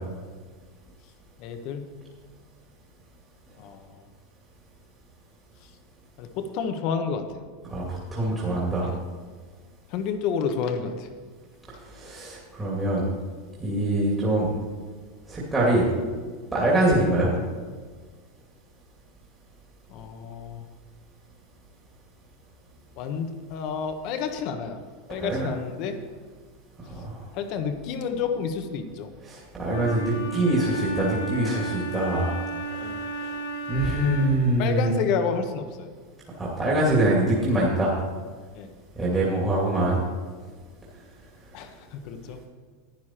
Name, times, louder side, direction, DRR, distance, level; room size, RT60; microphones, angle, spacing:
voice 1, 1.4-1.9 3.6-4.0 6.2-7.4 8.8-9.0 9.9-11.1 19.9-20.6 23.0-24.8 25.1-26.0 27.3-29.1 32.8-33.0 34.6-35.9 38.5-38.7 41.5-42.4, left 6 dB, 50° left, 7 dB, 1.3 m, -30 dB
voice 2, 7.7-8.9 11.9-13.0 13.6-14.5 15.3-15.9 16.5-17.3 25.2-25.5 27.0-27.1 29.3-32.3 32.7-33.3 33.7-35.0 36.4-37.9 39.0-40.0, right 1 dB, 15° right, -6 dB, 2.5 m, -24 dB
Wind instrument woodwind instrument, 29.6-34.5, right 2 dB, 85° left, 1.8 m, -33 dB
11.5 x 9.5 x 4.5 m, 1.5 s
supercardioid pair, 135°, 0 cm